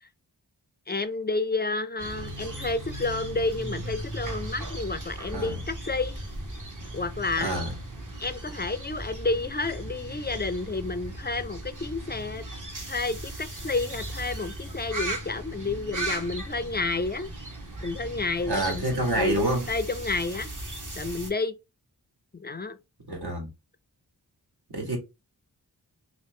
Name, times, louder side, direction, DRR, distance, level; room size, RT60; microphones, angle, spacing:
voice 1, 0.9-6.2 6.9-7.6 8.2-12.4 12.9-17.3 17.8-18.8 19.1-19.4 19.7-20.5 21.0-21.5 22.3-22.8, left 3 dB, 25° left, 0.4 m, -30 dB
sound 1, 2.0-21.3, right 1 dB, 50° right, 1.2 m, -37 dB
voice 2, 7.4-7.7 18.5-19.7 23.1-23.5 24.7-25.0, right 1 dB, 65° right, 1.5 m, -27 dB
3.1 x 2.9 x 3.1 m
wide cardioid pair, 60°, 41 cm